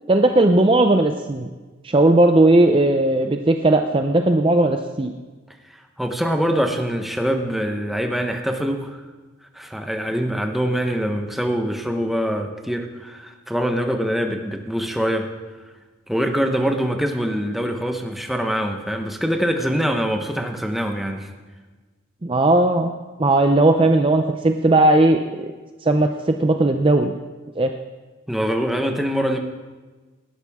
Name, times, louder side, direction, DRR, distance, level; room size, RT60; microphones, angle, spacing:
voice 1, 0.1-1.5 1.8-5.1 22.2-22.9 23.2-25.5 25.8-27.1 27.6-27.7, right 2 dB, 25° right, 5 dB, 0.5 m, -17 dB
voice 2, 5.6-9.0 9.5-15.3 16.1-21.3 28.3-29.4, equal, ahead, 4 dB, 1.0 m, -24 dB
18.5 x 12.0 x 3.6 m, 1.3 s
head